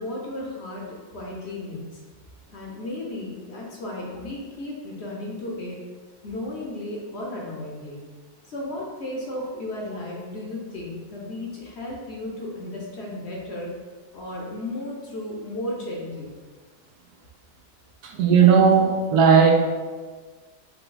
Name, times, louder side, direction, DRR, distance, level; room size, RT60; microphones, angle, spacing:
voice 1, 0.0-2.0 2.5-5.8 6.2-8.0 8.4-13.7 14.1-16.3, left 1 dB, 55° left, -2 dB, 0.9 m, -34 dB
voice 2, 18.0-19.6, right 6 dB, 80° right, 3 dB, 1.1 m, -16 dB
5.8 x 2.2 x 3.8 m, 1.4 s
omnidirectional pair, 1.6 m